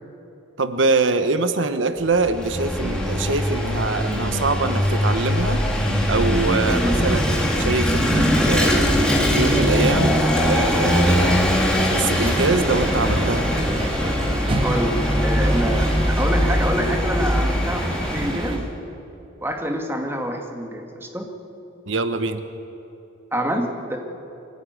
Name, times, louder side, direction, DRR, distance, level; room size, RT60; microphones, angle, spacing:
voice 1, 0.6-5.6 6.1-8.9 9.3-11.4 11.8-13.5 21.9-22.4, right 3 dB, 80° right, 9 dB, 1.2 m, -23 dB
Vehicle / Engine, 2.0-18.7, equal, 5° left, 2.9 m, -21 dB
voice 2, 6.7-7.1 14.6-18.7 19.4-21.3 23.3-24.0, equal, 10° right, 3 dB, 2.1 m, -26 dB
sound 1, 12.1-18.6, right 1 dB, 30° right, 1.6 m, -28 dB
23.5 x 16.5 x 9.6 m, 2.9 s
head